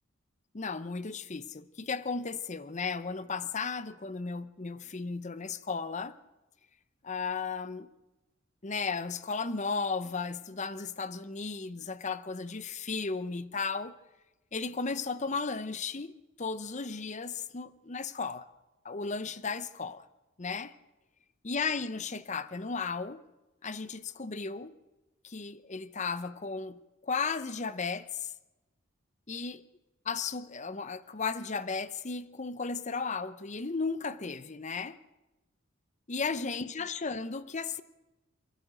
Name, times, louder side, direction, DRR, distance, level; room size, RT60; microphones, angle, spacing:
voice 1, 0.5-6.2 7.0-7.9 8.6-14.0 14.5-16.1 16.4-18.5 18.8-20.1 20.4-20.7 21.4-23.2 23.6-24.8 25.2-28.3 29.3-29.6 30.0-35.0 36.1-37.8, left 4 dB, 35° left, 0.7 m, -35 dB
27.5 x 10.5 x 8.9 m
head